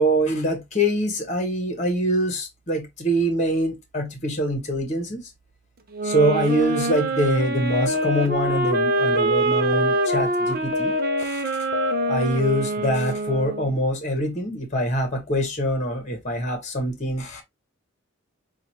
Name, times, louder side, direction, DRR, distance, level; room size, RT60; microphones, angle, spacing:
voice 1, 0.0-5.3 6.0-11.4 12.1-17.4, right 1 dB, 35° left, 1.1 m, -24 dB
sound 1, 5.9-13.8, right 2 dB, 45° right, 0.7 m, -25 dB
sound 2, 7.7-8.2 8.7-9.2 9.7-10.2 10.7-11.2 11.7-12.2, left 4 dB, 70° left, 0.7 m, -25 dB
5.8 x 2.5 x 2.9 m
head